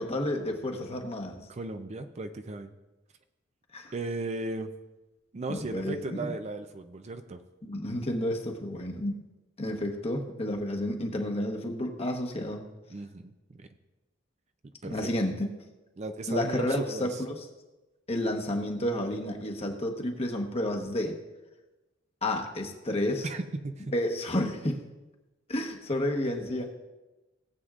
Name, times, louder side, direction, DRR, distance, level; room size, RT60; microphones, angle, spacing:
voice 1, 0.0-1.4 3.7-3.9 5.5-6.3 7.6-9.1 9.6-12.6 14.8-15.3 16.3-17.4 18.1-21.2 22.2-23.3 23.9-24.8 25.5-26.8, left 1 dB, 30° left, 2 dB, 1.1 m, -31 dB
voice 2, 1.5-2.7 3.9-4.7 5.3-7.4 12.9-13.7 14.8-15.1 16.0-17.2 23.2-23.9, right 2 dB, 35° right, 8 dB, 0.5 m, -36 dB
18.0 x 7.9 x 2.5 m, 1.1 s
head